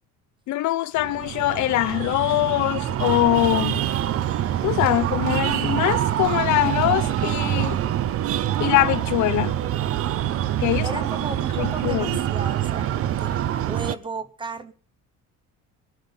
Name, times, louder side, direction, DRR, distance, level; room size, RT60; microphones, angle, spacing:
voice 1, 0.5-3.8 4.6-7.8 8.6-9.6 10.6-11.0 11.6-12.2, left 16 dB, 65° left, 0.9 m, -23 dB
Breathing, 1.0-14.0, right 11 dB, 45° right, 0.8 m, -25 dB
voice 2, 10.8-14.7, right 3 dB, 15° right, 0.8 m, -35 dB
20.5 x 11.0 x 5.6 m
cardioid pair, 155°, 31 cm